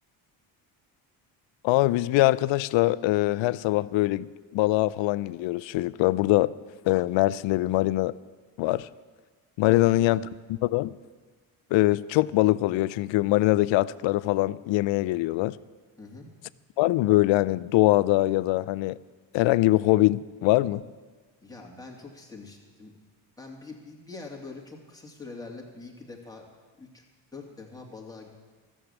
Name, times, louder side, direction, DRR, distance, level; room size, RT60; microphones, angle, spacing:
voice 1, 1.6-4.3 4.5-6.5 6.9-8.1 8.6-8.9 9.6-10.2 10.6-10.9 11.7-15.6 16.8-19.0 19.3-20.8, left 17 dB, 70° left, 19 dB, 0.5 m, -23 dB
voice 2, 9.6-10.2 16.0-16.3 21.4-22.9 23.4-26.5 26.8-27.0 27.3-28.3, left 3 dB, 10° left, -1 dB, 2.8 m, -44 dB
13.0 x 7.5 x 8.2 m, 1.4 s
supercardioid pair, 75°, 47 cm